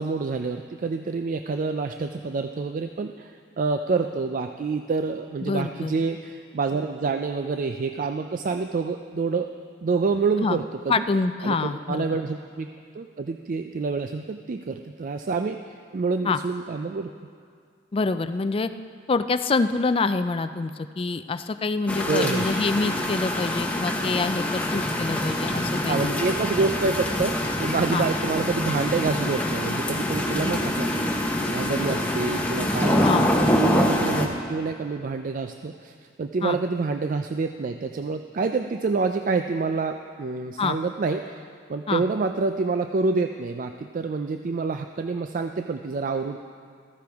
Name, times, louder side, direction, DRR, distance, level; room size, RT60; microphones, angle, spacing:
voice 1, 0.0-9.5 9.8-10.9 11.4-12.7 12.9-15.6 15.9-17.1 22.1-22.5 25.9-31.1 31.4-41.4 41.7-46.4, right 4 dB, 45° right, 6 dB, 0.4 m, -27 dB
voice 2, 5.4-5.9 10.4-10.6 10.9-12.1 16.2-16.4 17.9-18.7 19.1-26.2 27.9-28.1 33.0-33.3 36.4-36.6 40.6-40.8 41.9-42.0, left 3 dB, 30° left, 11 dB, 0.4 m, -26 dB
rain and thunder from outdoor break area, 21.9-34.3, left 1 dB, 10° left, 1.0 m, -25 dB
14.5 x 14.0 x 3.5 m, 2.2 s
head